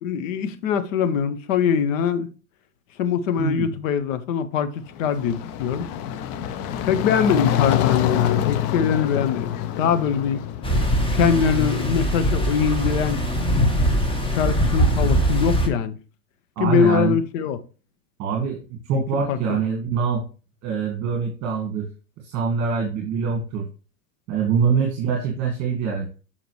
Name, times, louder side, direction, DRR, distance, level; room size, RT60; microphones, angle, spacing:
voice 1, 0.0-2.3 3.0-5.9 6.8-10.4 11.1-13.2 14.3-16.0 16.6-17.6 18.9-19.0 19.3-19.4, left 7 dB, 55° left, 1.0 m, -22 dB
voice 2, 3.4-3.7 16.6-17.1 18.2-20.2 20.6-21.9 22.2-23.7 24.3-26.2, right 6 dB, 35° right, 1.8 m, -24 dB
sound 1, 4.9-10.9, left 11 dB, 35° left, 0.6 m, -26 dB
sound 2, 10.6-15.7, equal, 10° left, 1.3 m, -21 dB
6.9 x 5.6 x 3.1 m
hypercardioid pair, 105°, 46 cm